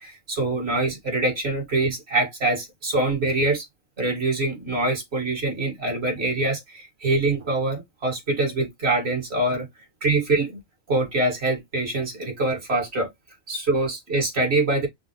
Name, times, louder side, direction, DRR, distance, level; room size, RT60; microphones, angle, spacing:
voice 1, 0.0-3.6 4.0-9.7 10.0-10.6 10.9-13.1 13.5-14.9, right 2 dB, 50° right, 2.2 m, -24 dB
5.8 x 2.0 x 3.1 m
omnidirectional pair, 1.4 m